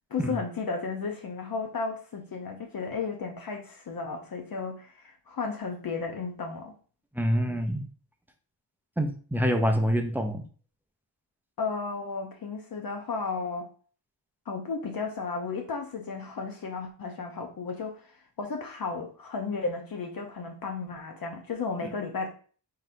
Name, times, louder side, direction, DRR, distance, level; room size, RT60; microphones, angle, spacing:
voice 1, 0.1-6.7 11.6-13.7 14.5-22.3, left 4 dB, 50° left, 2 dB, 0.7 m, -34 dB
voice 2, 7.1-7.9 9.0-10.4 21.8-21.9, equal, 5° right, 5 dB, 0.4 m, -26 dB
4.1 x 3.9 x 2.5 m, 0.41 s
wide cardioid pair, 145°, 45 cm